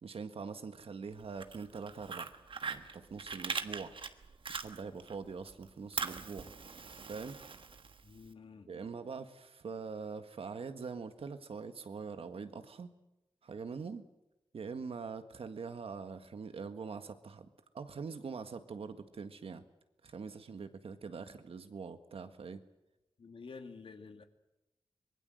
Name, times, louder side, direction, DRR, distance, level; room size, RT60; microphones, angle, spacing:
voice 1, 0.0-2.3 2.6-3.9 4.5-6.5 7.1-7.4 8.7-12.9 13.4-14.1 14.5-17.5 17.7-19.6 20.0-22.6, right 5 dB, 80° right, 9 dB, 1.8 m, -43 dB
Fire, 1.2-5.1 5.5-8.3, right 5 dB, 65° right, 1.4 m, -41 dB
voice 2, 8.0-8.7 23.2-24.2, left 4 dB, 65° left, 7 dB, 2.3 m, -50 dB
24.0 x 21.0 x 7.9 m, 0.93 s
wide cardioid pair, 110°, 10 cm